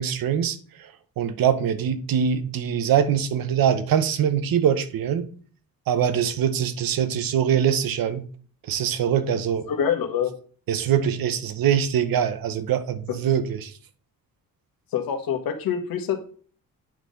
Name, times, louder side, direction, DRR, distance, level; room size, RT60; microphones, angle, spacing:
voice 1, 0.0-5.3 5.9-8.2 8.6-9.7 10.7-13.7, right 8 dB, 85° right, 1.0 m, -23 dB
voice 2, 9.7-10.3 13.1-13.2 14.9-16.2, left 8 dB, 85° left, 1.4 m, -26 dB
9.1 x 5.6 x 3.9 m
wide cardioid pair, 180°, 35 cm